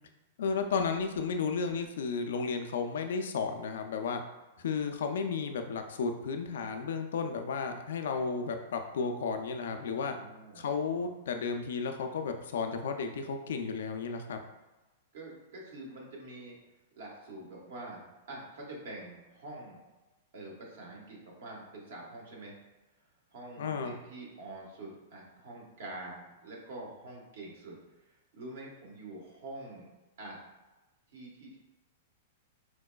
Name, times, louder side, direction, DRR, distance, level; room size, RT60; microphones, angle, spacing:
voice 1, 0.4-4.2 4.6-10.2 10.5-14.4 23.6-23.9, left 5 dB, 75° left, 6 dB, 0.3 m, -33 dB
voice 2, 9.7-10.7 15.1-16.6 16.9-19.8 20.3-22.5 23.3-27.8 28.0-29.9 30.2-30.4 31.1-31.6, right 2 dB, 70° right, -2 dB, 1.1 m, -46 dB
4.5 x 2.2 x 2.2 m, 1.1 s
hypercardioid pair, 115°, 0 cm